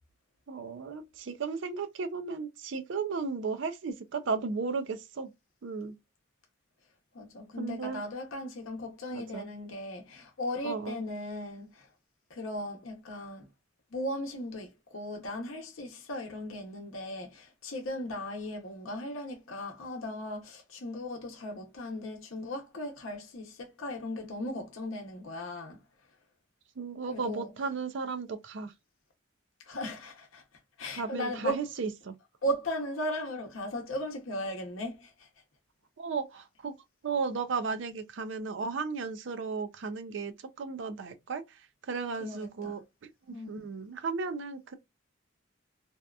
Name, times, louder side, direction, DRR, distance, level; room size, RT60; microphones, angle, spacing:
voice 1, 0.5-5.3 5.6-6.0 7.6-8.0 9.1-9.5 10.6-11.0 26.8-28.7 30.9-32.1 36.0-36.7 37.0-41.6 41.9-42.8 43.3-44.7, right 4 dB, 65° right, 0.4 m, -35 dB
voice 2, 7.1-11.9 12.3-13.5 13.9-25.8 27.1-27.5 29.7-30.4 30.8-31.6 32.4-35.3 42.2-42.8 43.3-43.6, equal, 85° left, 0.7 m, -37 dB
2.7 x 2.2 x 2.2 m
head